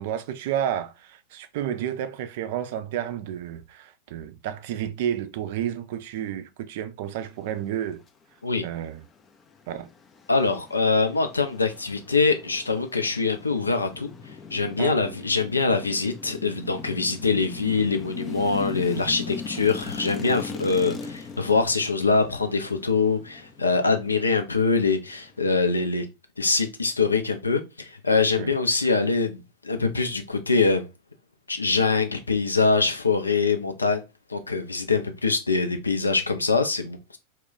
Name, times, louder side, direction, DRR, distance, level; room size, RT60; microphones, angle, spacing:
voice 1, 0.0-8.0 8.6-9.1 9.7-9.9 14.8-15.0 28.4-28.5, right 10 dB, 50° right, 0.4 m, -31 dB
sound 1, 9.2-25.9, left 5 dB, 25° left, 0.4 m, -40 dB
voice 2, 10.3-14.1 14.5-26.1 26.4-30.9 31.5-34.0 34.3-37.2, left 4 dB, 80° left, 0.5 m, -24 dB
2.3 x 2.1 x 3.9 m
figure-of-eight pair, 90°, 0 cm